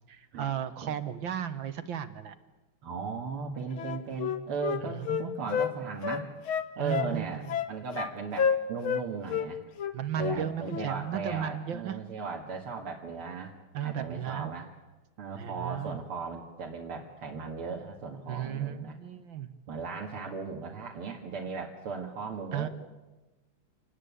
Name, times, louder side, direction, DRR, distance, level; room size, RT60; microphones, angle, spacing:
voice 1, 0.1-2.4 4.8-5.3 6.8-7.6 9.9-12.0 13.7-14.5 15.3-16.0 18.3-19.5 22.5-22.7, right 9 dB, 65° right, 11 dB, 1.9 m, -35 dB
voice 2, 2.8-6.3 6.8-9.6 10.2-13.5 13.8-14.7 15.2-19.0 19.7-22.7, right 5 dB, 80° right, 0 dB, 2.7 m, -37 dB
Wind instrument woodwind instrument, 3.8-5.7 6.0-7.1 7.5-8.1 8.4-9.0 9.3-9.5 9.8-10.4 10.7-10.9, left 8 dB, 70° left, 2.1 m, -30 dB
27.0 x 19.5 x 8.3 m, 1.1 s
omnidirectional pair, 2.4 m